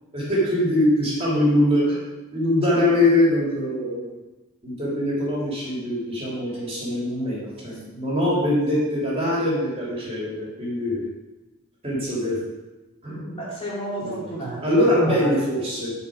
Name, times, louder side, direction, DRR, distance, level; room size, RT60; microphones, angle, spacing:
voice 1, 0.1-2.0 2.3-4.1 4.6-11.0 11.8-12.4 13.0-13.2 14.0-14.3 14.6-15.9, left 1 dB, 25° right, -6 dB, 3.0 m, -22 dB
voice 2, 13.1-15.4, right 1 dB, 25° left, -6 dB, 2.9 m, -32 dB
11.0 x 4.7 x 5.0 m, 1.1 s
head